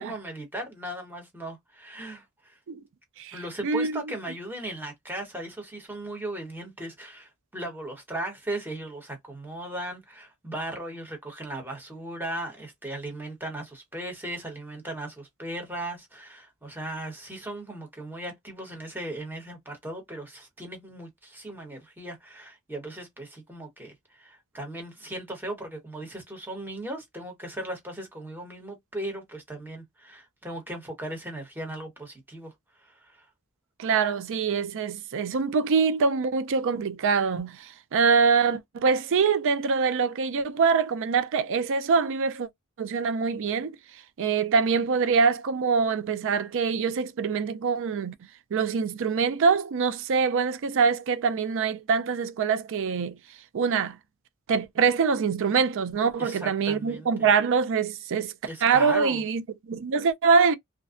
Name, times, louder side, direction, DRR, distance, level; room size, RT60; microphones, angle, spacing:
voice 1, 0.0-2.6 3.3-32.5 32.8-33.3 56.2-57.3 58.4-59.2, right 1 dB, 10° right, 1.0 m, -37 dB
voice 2, 3.2-3.9 33.8-42.5 42.8-43.8 44.2-48.1 48.5-53.2 53.5-54.0 54.5-58.3 58.6-60.5, right 5 dB, 60° right, 0.4 m, -24 dB
2.5 x 2.2 x 2.4 m
head